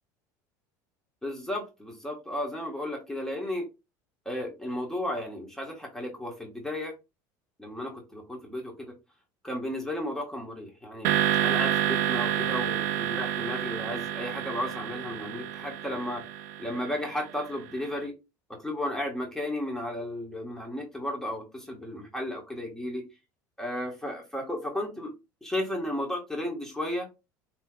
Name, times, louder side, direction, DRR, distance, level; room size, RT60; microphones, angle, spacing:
voice 1, 1.2-3.7 4.2-6.9 7.6-8.9 9.4-11.1 11.4-16.2 16.6-18.1 18.6-23.0 23.6-25.1 25.4-27.1, left 1 dB, 5° left, 0 dB, 1.2 m, -34 dB
sound 1, 11.0-17.4, right 10 dB, 85° right, 0.6 m, -29 dB
5.5 x 2.9 x 2.2 m, 0.25 s
supercardioid pair, 105°, 9 cm